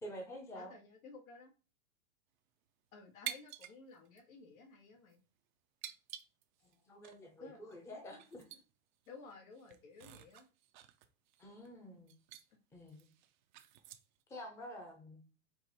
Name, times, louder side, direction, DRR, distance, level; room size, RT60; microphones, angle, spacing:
voice 1, 0.0-0.7 6.9-8.6 11.4-12.1 12.7-13.0 14.3-15.2, equal, 5° left, 1 dB, 0.6 m, -49 dB
voice 2, 0.5-1.5 2.9-5.2 7.4-8.0 9.1-10.5, left 4 dB, 85° left, 2 dB, 1.8 m, -55 dB
sound 1, 3.2-3.8 4.1-4.2 4.9-5.1 5.8-6.7 7.0-7.2 7.7-7.8 8.1-8.6 9.0-9.1 9.5-11.7 12.1-12.4 12.9-14.2, right 12 dB, 40° right, 0.4 m, -48 dB
4.6 x 2.5 x 4.0 m, 0.33 s
supercardioid pair, 150°, 41 cm